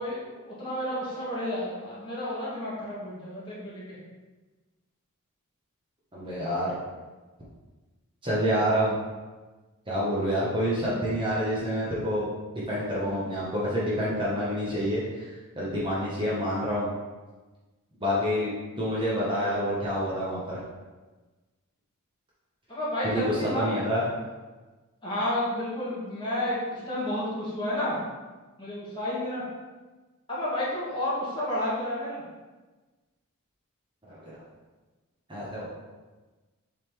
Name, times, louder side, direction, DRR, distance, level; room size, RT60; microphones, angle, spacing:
voice 1, 0.0-4.0 22.7-23.7 24.1-24.2 25.0-28.0 28.6-29.4 30.3-32.2, left 1 dB, 20° left, -9 dB, 2.0 m, -31 dB
voice 2, 6.1-6.7 8.2-9.0 9.9-12.3 12.5-16.9 18.0-18.5 18.8-20.6 23.0-24.0 34.1-34.3 35.3-35.7, equal, 20° right, -8 dB, 1.3 m, -28 dB
7.4 x 4.1 x 3.4 m, 1.3 s
head